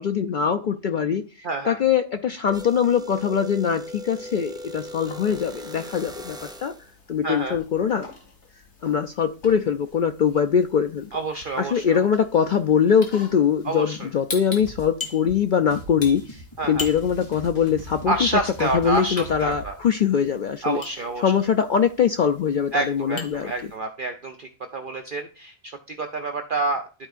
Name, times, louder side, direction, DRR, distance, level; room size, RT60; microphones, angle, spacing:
voice 1, 0.0-6.7 7.1-8.1 8.8-11.1 11.6-18.3 18.6-20.8 21.2-23.5, left 7 dB, 75° left, 0.4 m, -22 dB
voice 2, 1.4-1.8 7.2-7.6 11.1-12.0 13.6-14.1 16.6-16.9 18.1-19.8 20.6-21.2 22.7-26.9, right 3 dB, 50° right, 0.7 m, -28 dB
sound 1, 2.5-6.9, equal, 5° right, 0.4 m, -38 dB
sound 2, 5.0-23.8, left 3 dB, 60° left, 1.9 m, -43 dB
sound 3, 14.5-19.7, equal, 25° left, 2.6 m, -41 dB
13.0 x 4.5 x 2.4 m
omnidirectional pair, 1.4 m